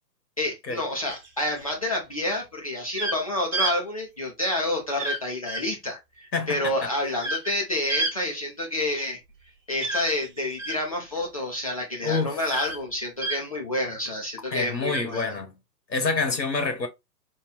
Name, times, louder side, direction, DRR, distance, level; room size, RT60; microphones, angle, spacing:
voice 1, 0.4-9.2 9.7-15.4, left 1 dB, 25° left, 0.4 m, -29 dB
sound 1, 1.1-1.6 2.9-3.2 3.5-3.7 5.0-5.2 5.5-5.6 7.2-7.5 7.9-8.1 9.8-10.8 12.5-12.8 13.2-13.4 14.8-15.0, right 2 dB, 25° right, 1.3 m, -29 dB
voice 2, 6.3-6.9 12.0-12.4 14.5-15.6 15.9-16.9, left 4 dB, 90° left, 1.6 m, -27 dB
4.3 x 2.3 x 3.4 m
figure-of-eight pair, 130°, 50 cm